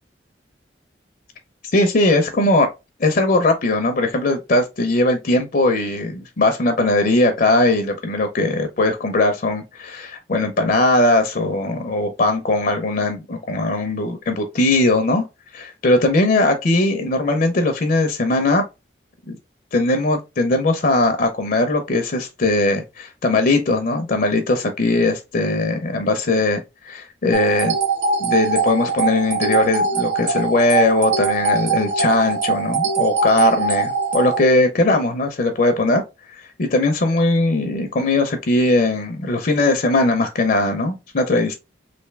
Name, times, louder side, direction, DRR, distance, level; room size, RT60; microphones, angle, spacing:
voice 1, 1.7-2.7 3.0-15.2 15.5-18.6 19.3-19.4 19.7-27.8 28.2-36.0 36.6-41.5, left 2 dB, 50° left, 0.5 m, -19 dB
sound 1, 27.3-34.4, right 5 dB, 80° right, 0.8 m, -21 dB
3.3 x 2.6 x 3.2 m
head